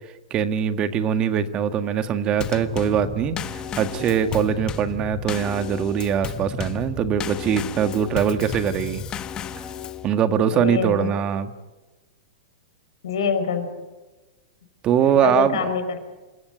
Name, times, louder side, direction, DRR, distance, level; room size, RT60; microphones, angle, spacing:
voice 1, 0.3-9.0 10.0-11.5 14.8-15.7, right 8 dB, 35° right, 9 dB, 1.7 m, -22 dB
Drum kit / Snare drum / Bass drum, 2.4-10.1, left 7 dB, 30° left, 1.3 m, -33 dB
voice 2, 10.5-11.1 13.0-13.8 15.0-16.0, left 6 dB, 75° left, 8 dB, 5.3 m, -25 dB
28.0 x 16.0 x 9.4 m, 1.2 s
hypercardioid pair, 120°, 3 cm